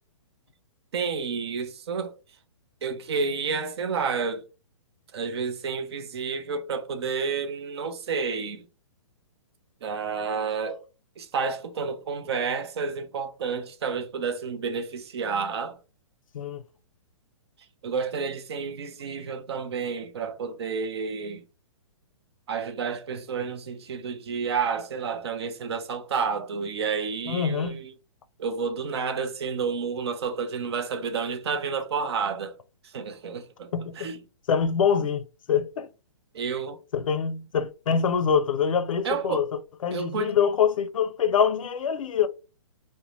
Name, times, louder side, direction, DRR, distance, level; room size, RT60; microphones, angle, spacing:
voice 1, 0.9-2.1 2.8-4.4 5.1-8.7 9.8-10.8 11.2-15.8 17.8-21.4 22.5-27.9 28.4-32.6 32.8-33.7 34.0-34.2 36.3-36.8 39.0-39.4 39.9-40.3, right 5 dB, 50° right, 0.5 m, -30 dB
voice 2, 27.3-27.8 33.7-34.1 34.5-35.2 35.5-35.9 36.9-39.4 39.8-42.3, left 7 dB, 80° left, 0.5 m, -24 dB
2.6 x 2.1 x 3.0 m
hypercardioid pair, 165°, 17 cm